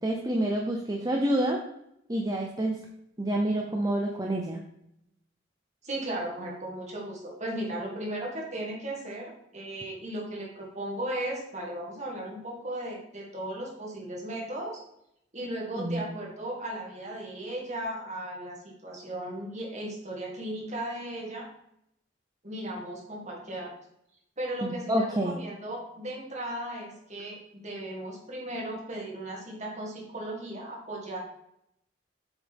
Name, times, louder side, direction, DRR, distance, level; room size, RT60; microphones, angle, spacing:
voice 1, 0.0-1.6 2.1-2.8 3.2-4.6 15.8-16.0 24.6-25.4, right 1 dB, 20° right, 0 dB, 0.7 m, -28 dB
voice 2, 5.8-14.8 15.3-21.5 22.4-23.7 24.4-31.2, right 1 dB, 35° right, -2 dB, 2.2 m, -36 dB
8.1 x 6.6 x 3.6 m, 0.77 s
head